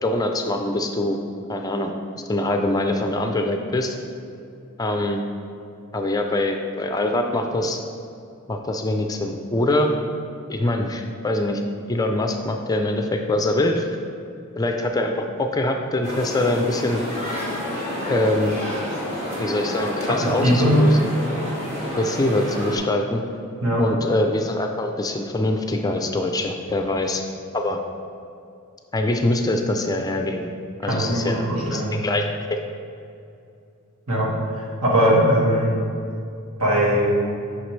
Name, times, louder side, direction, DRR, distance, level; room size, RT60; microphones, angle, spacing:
voice 1, 0.0-1.2 1.5-1.9 2.3-4.0 4.8-5.2 5.9-7.8 8.5-10.0 10.5-11.6 11.9-13.9 14.6-17.0 18.1-18.5 19.4-21.0 22.0-23.2 23.8-27.2 27.5-27.8 28.9-30.5 30.8-31.4 31.7-32.3, left 1 dB, 15° left, 4 dB, 0.4 m, -23 dB
sound 1, 16.0-22.8, left 1 dB, 30° right, 1.7 m, -29 dB
voice 2, 20.2-20.8 23.6-23.8 30.9-32.0 34.1-34.3 34.5-35.7 36.6-37.1, equal, 70° right, -4 dB, 1.8 m, -20 dB
9.1 x 5.8 x 3.2 m, 2.5 s
head